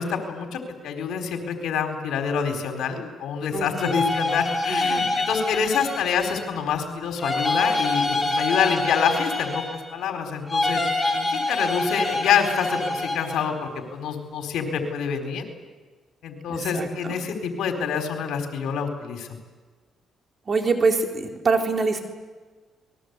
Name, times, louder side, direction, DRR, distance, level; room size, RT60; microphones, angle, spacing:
voice 1, 0.0-9.6 9.9-15.4 16.2-19.3, left 7 dB, 80° left, 4 dB, 4.3 m, -26 dB
voice 2, 3.5-3.9 4.7-5.1 11.1-11.3 16.5-17.1 20.5-22.0, right 4 dB, 40° right, 2 dB, 4.2 m, -25 dB
sound 1, 3.7-6.6 7.2-10.0 10.5-13.4, left 2 dB, 20° left, 4.8 m, -26 dB
28.5 x 21.5 x 8.3 m, 1.4 s
cardioid pair, 90°, 0 cm